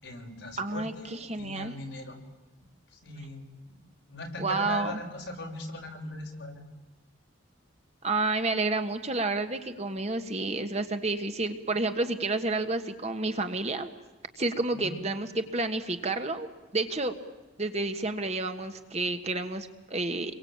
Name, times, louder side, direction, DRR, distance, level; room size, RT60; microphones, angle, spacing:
voice 1, 0.0-2.2 2.9-6.6 14.7-15.0, left 1 dB, 60° left, 1 dB, 6.2 m, -40 dB
voice 2, 0.6-1.7 4.4-5.0 8.0-13.9 14.4-16.5 16.7-17.1 17.6-20.4, right 2 dB, 30° right, 7 dB, 1.5 m, -30 dB
28.0 x 23.0 x 8.8 m, 1.2 s
head